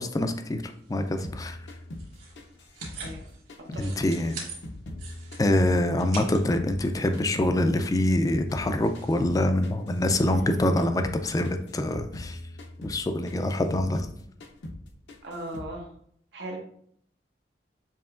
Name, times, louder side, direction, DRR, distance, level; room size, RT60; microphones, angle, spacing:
voice 1, 0.0-1.6 3.8-4.4 5.4-12.4 12.8-14.1, left 1 dB, 20° left, 7 dB, 0.3 m, -25 dB
sound 1, 0.6-9.5, right 4 dB, 50° right, 1.9 m, -46 dB
sound 2, 1.2-6.9 7.1-10.5 10.8-11.2 11.4-14.2 14.4-14.8 15.1-15.7, left 1 dB, 80° left, 0.6 m, -41 dB
voice 2, 15.2-15.9 16.3-16.6, right 1 dB, 75° right, 1 dB, 1.0 m, -37 dB
6.9 x 2.8 x 2.4 m, 0.67 s
head